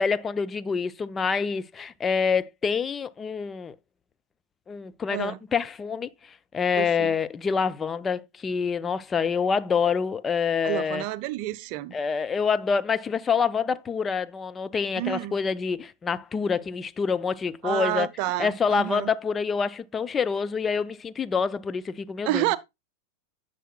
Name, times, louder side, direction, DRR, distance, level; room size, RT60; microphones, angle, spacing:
voice 1, 0.0-3.7 4.7-6.1 6.5-11.0 11.9-18.1 18.4-22.4, left 6 dB, 20° left, 0.5 m, -26 dB
voice 2, 5.1-5.4 6.8-7.1 10.6-11.9 15.0-15.4 17.6-19.1 22.2-22.6, right 16 dB, 45° right, 0.6 m, -29 dB
10.0 x 7.5 x 2.3 m
figure-of-eight pair, 90°, 0 cm